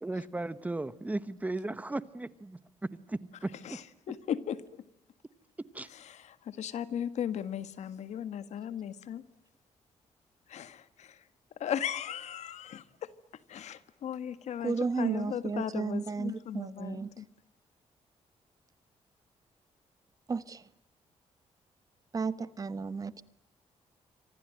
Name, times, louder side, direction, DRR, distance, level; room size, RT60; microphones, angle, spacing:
voice 1, 0.0-2.6 2.9-3.8 5.7-5.9, right 2 dB, 15° right, 15 dB, 1.0 m, -36 dB
voice 2, 3.6-4.6 5.9-9.2 10.5-11.2 11.6-13.1 13.5-17.2, left 9 dB, 80° left, 13 dB, 1.7 m, -37 dB
voice 3, 14.6-17.1 20.3-20.7 22.1-23.2, right 4 dB, 30° right, 15 dB, 1.1 m, -33 dB
29.5 x 25.5 x 7.7 m, 0.76 s
wide cardioid pair, 145°, 12 cm